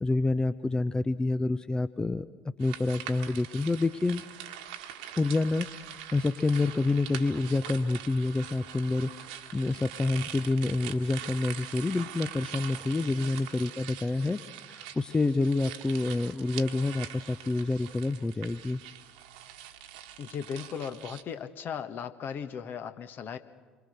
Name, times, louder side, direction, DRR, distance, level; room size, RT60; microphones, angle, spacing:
voice 1, 0.0-4.2 5.2-14.4 14.7-18.8, left 2 dB, 15° left, 14 dB, 0.7 m, -28 dB
sound 1, 2.6-21.2, right 10 dB, 70° right, 1.5 m, -43 dB
voice 2, 20.2-23.4, left 7 dB, 45° left, 9 dB, 1.4 m, -37 dB
27.0 x 24.0 x 6.6 m, 1.4 s
figure-of-eight pair, 55°, 4 cm